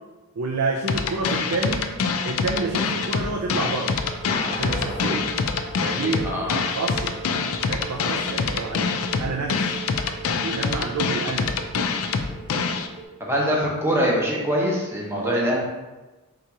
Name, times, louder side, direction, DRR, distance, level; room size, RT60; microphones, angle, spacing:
voice 1, 0.3-1.9 2.2-4.0 4.5-5.3 5.8-6.3 6.7-7.2 7.7-9.8 10.3-11.6 15.1-15.4, right 3 dB, 80° right, 0 dB, 0.5 m, -29 dB
sound 1, 0.9-12.9, left 5 dB, 70° left, 0.4 m, -25 dB
sound 2, 2.8-13.0, right 5 dB, 55° right, 1.0 m, -41 dB
sound 3, 4.3-6.8, left 2 dB, 35° left, 0.7 m, -35 dB
voice 2, 4.9-5.2 5.8-6.6 8.3-8.4 13.2-15.6, equal, 10° right, -3 dB, 0.8 m, -24 dB
3.8 x 2.9 x 4.6 m, 1.2 s
head